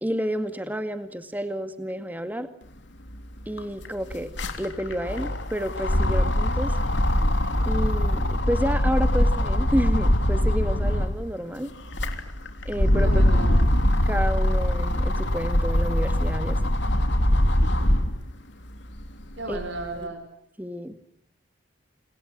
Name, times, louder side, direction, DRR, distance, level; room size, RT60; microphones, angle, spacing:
voice 1, 0.0-2.5 3.5-4.3 4.6-6.7 7.7-11.7 12.7-13.2 14.1-16.7 19.5-19.6 20.0-20.1 20.6-20.9, equal, 10° right, 9 dB, 2.1 m, -30 dB
sound 1, 3.1-3.2 3.4-11.2 11.7-18.2 18.7-19.9, left 1 dB, 65° left, 3.4 m, -22 dB
voice 2, 13.0-13.6 19.4-20.2, right 2 dB, 65° right, 8 dB, 5.0 m, -34 dB
30.0 x 28.5 x 6.3 m, 0.74 s
head